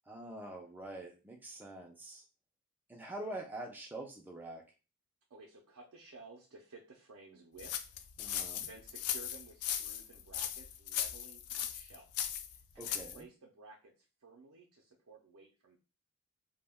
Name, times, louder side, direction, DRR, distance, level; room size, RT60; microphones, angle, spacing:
voice 1, 0.1-2.2 2.9-4.6 8.2-8.7 12.8-13.3, right 1 dB, 10° right, 1 dB, 0.3 m, -45 dB
voice 2, 5.3-7.9 8.2-15.8, right 3 dB, 70° right, 0 dB, 0.5 m, -56 dB
sound 1, 7.6-13.2, left 10 dB, 80° left, 0.3 m, -38 dB
2.2 x 2.1 x 3.4 m, 0.32 s
head